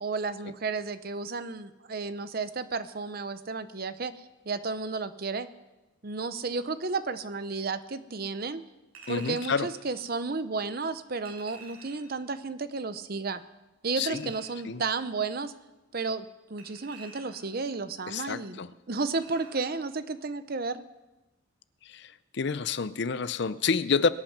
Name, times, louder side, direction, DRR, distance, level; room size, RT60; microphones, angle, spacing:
voice 1, 0.0-5.5 6.0-8.6 9.1-13.4 13.8-15.5 15.9-18.6 18.9-20.9, right 4 dB, 45° right, 12 dB, 0.7 m, -32 dB
Chink clink, 8.9-9.7 11.2-12.2 14.0-14.7 16.6-17.6 19.1-19.8 20.1-20.3, right 4 dB, 90° right, 5.6 m, -50 dB
voice 2, 9.1-9.7 14.0-14.3 14.7-14.8 18.1-18.7 21.8-24.1, left 5 dB, 55° left, 15 dB, 0.5 m, -29 dB
22.5 x 8.9 x 6.0 m, 1.1 s
head